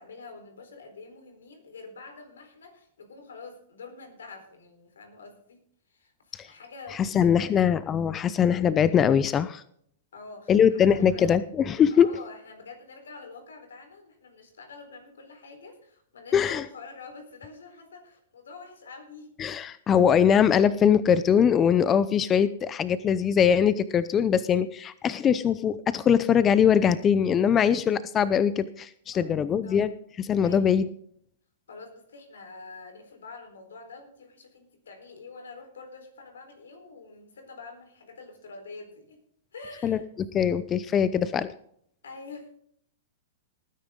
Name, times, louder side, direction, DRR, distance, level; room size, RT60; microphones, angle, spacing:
voice 1, 0.0-5.6 5.9-7.8 10.1-11.4 11.9-19.3 29.1-29.8 30.4-30.7 31.7-39.2 39.5-40.0 42.0-42.6, left 4 dB, 85° left, 6 dB, 4.4 m, -46 dB
voice 2, 6.9-9.6 10.5-12.1 16.3-16.7 19.4-29.9 30.2-30.9 39.8-40.0 40.3-41.5, left 8 dB, 25° left, 15 dB, 0.6 m, -22 dB
19.5 x 9.8 x 3.9 m, 0.66 s
hypercardioid pair, 120°, 0 cm